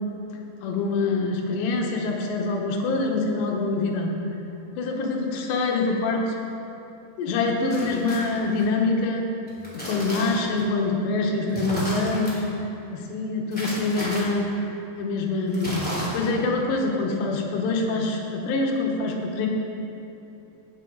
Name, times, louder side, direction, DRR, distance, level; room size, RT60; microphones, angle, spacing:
voice 1, 0.6-4.1 4.8-6.3 7.2-9.3 9.7-12.4 12.9-14.5 15.0-19.5, left 3 dB, 75° left, 0 dB, 3.2 m, -25 dB
sound 1, 7.7-8.6 9.5-10.6 11.5-12.3 13.5-14.2 15.5-16.4, equal, 5° left, 1.4 m, -33 dB
17.0 x 7.0 x 3.9 m, 2.8 s
omnidirectional pair, 5.1 m